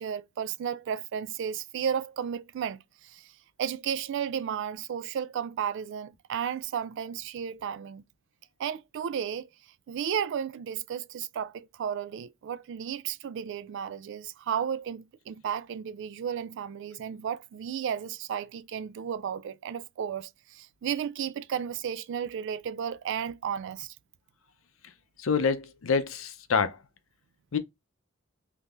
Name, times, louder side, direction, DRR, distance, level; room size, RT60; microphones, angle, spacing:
voice 1, 0.0-3.3 3.6-8.0 8.6-9.5 9.9-23.9, right 8 dB, 60° right, 0.3 m, -33 dB
voice 2, 25.2-26.8 27.5-27.6, left 5 dB, 75° left, 0.6 m, -26 dB
3.5 x 2.8 x 2.4 m
head